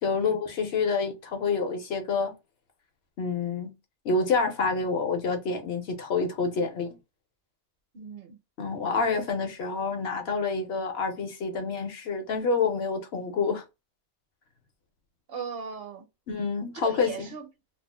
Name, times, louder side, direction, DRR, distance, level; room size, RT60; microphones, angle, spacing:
voice 1, 0.0-2.3 3.2-3.7 4.0-6.9 8.6-13.6 16.3-17.1, left 4 dB, 70° left, 0.9 m, -28 dB
voice 2, 7.9-8.4 15.3-16.1 16.7-17.5, right 6 dB, 65° right, 0.7 m, -38 dB
2.3 x 2.1 x 3.2 m
omnidirectional pair, 1.1 m